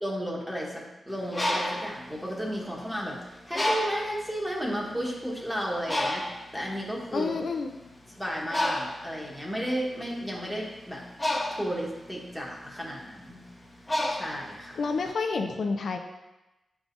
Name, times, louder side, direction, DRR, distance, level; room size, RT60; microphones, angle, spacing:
voice 1, 0.0-7.3 8.2-11.0 11.5-13.4 14.1-14.8, equal, 5° right, -3 dB, 1.4 m, -33 dB
Bird, 1.1-3.0 3.5-4.2 4.9-5.0 5.3-15.0, left 1 dB, 15° left, 1.0 m, -31 dB
voice 2, 7.1-7.7 14.8-16.0, left 4 dB, 70° left, 4 dB, 0.6 m, -29 dB
8.8 x 4.8 x 2.6 m, 1.0 s
wide cardioid pair, 110°, 0 cm